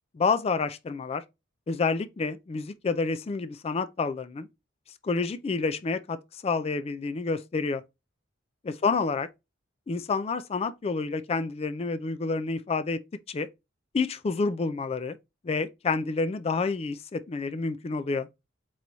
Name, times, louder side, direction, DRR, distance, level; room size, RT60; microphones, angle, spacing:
voice 1, 0.1-1.2 1.7-4.5 5.0-7.8 8.6-9.3 9.9-13.0 13.3-13.5 13.9-15.2 15.4-18.3, left 4 dB, 30° left, 0.3 m, -29 dB
4.7 x 2.9 x 3.9 m
head